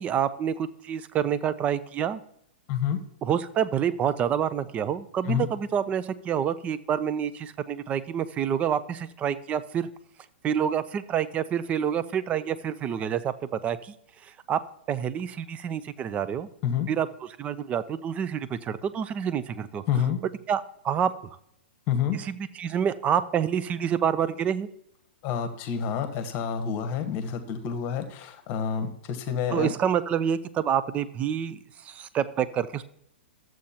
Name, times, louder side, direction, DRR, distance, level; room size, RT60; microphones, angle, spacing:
voice 1, 0.0-2.2 3.2-9.9 10.4-13.9 14.2-14.6 14.9-16.5 16.9-19.8 20.5-21.1 22.1-24.7 29.5-32.8, right 8 dB, 25° right, 15 dB, 0.5 m, -28 dB
voice 2, 2.7-3.0 5.3-5.5 16.6-16.9 19.9-20.2 21.9-22.2 25.2-29.7, left 8 dB, 35° left, 8 dB, 1.0 m, -28 dB
13.0 x 7.6 x 2.8 m, 0.74 s
hypercardioid pair, 125°, 6 cm